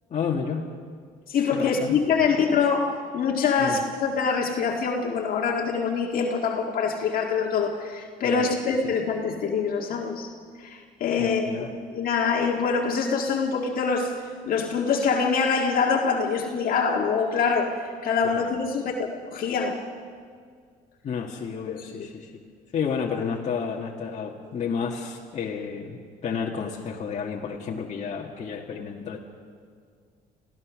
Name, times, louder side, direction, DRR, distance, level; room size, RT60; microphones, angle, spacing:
voice 1, 0.1-0.7 1.5-2.0 3.6-3.8 8.2-8.5 8.8-8.9 11.2-11.7 18.2-18.5 21.0-22.3 22.7-26.0 26.2-29.2, left 6 dB, 45° left, -2 dB, 1.9 m, -31 dB
voice 2, 1.3-10.3 10.6-14.2 14.5-19.8 21.7-22.1, left 5 dB, 60° left, 0 dB, 1.9 m, -25 dB
26.5 x 15.5 x 6.3 m, 2.1 s
cardioid pair, 110°, 17 cm